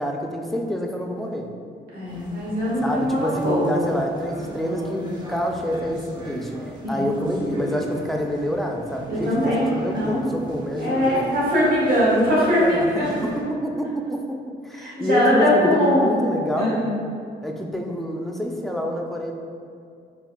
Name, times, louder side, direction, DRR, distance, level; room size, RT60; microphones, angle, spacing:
voice 1, 0.0-1.5 2.8-11.2 12.6-16.9 17.4-19.3, equal, ahead, 1 dB, 0.4 m, -27 dB
voice 2, 1.9-3.8 6.8-7.1 9.1-10.3 10.8-12.7 13.0-13.1 14.8-16.0 16.6-16.8, equal, 50° right, -8 dB, 1.3 m, -21 dB
sound 1, 2.1-13.4, right 1 dB, 20° right, 0.8 m, -37 dB
4.4 x 2.9 x 2.2 m, 2.3 s
supercardioid pair, 60°, 20 cm